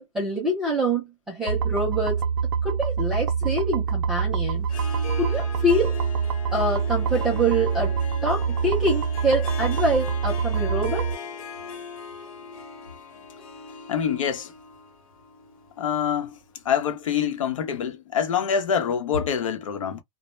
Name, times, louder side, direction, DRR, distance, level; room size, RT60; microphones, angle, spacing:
voice 1, 0.0-2.3 2.6-4.7 5.2-6.0 6.5-8.0 8.2-11.1, right 1 dB, ahead, 0.3 m, -25 dB
sound 1, 1.5-11.1, right 6 dB, 50° right, 0.5 m, -25 dB
Harp, 4.6-16.5, left 5 dB, 90° left, 1.0 m, -39 dB
voice 2, 13.9-14.5 15.8-16.4 16.6-20.0, left 8 dB, 70° left, 0.8 m, -25 dB
2.1 x 2.1 x 3.0 m
hypercardioid pair, 170°, 17 cm